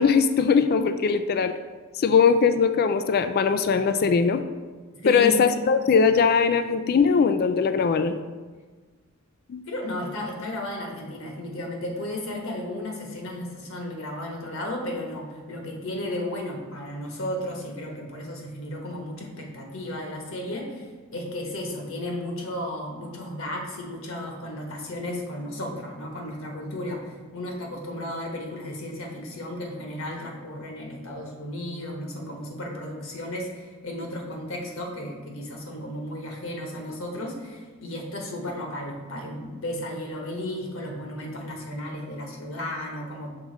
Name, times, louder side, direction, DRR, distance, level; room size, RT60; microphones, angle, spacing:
voice 1, 0.0-1.5 2.0-4.4 5.1-8.2 9.5-9.6, left 5 dB, 45° left, 9 dB, 0.3 m, -20 dB
voice 2, 5.0-5.4 9.7-43.3, left 1 dB, 70° left, 1 dB, 1.3 m, -34 dB
6.2 x 3.8 x 5.1 m, 1.4 s
head